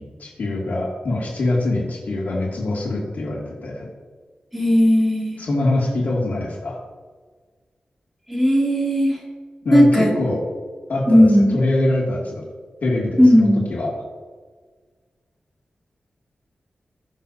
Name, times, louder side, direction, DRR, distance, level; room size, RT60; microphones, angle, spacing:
voice 1, 0.0-3.9 5.4-6.8 9.6-10.4 10.9-12.5 12.8-14.0, left 2 dB, 70° left, -3 dB, 2.7 m, -24 dB
voice 2, 4.5-5.4 8.3-9.2 9.7-10.1 11.1-11.6 13.2-13.6, equal, 5° right, -4 dB, 3.0 m, -15 dB
20.0 x 6.8 x 2.9 m, 1.5 s
wide cardioid pair, 100°, 3 cm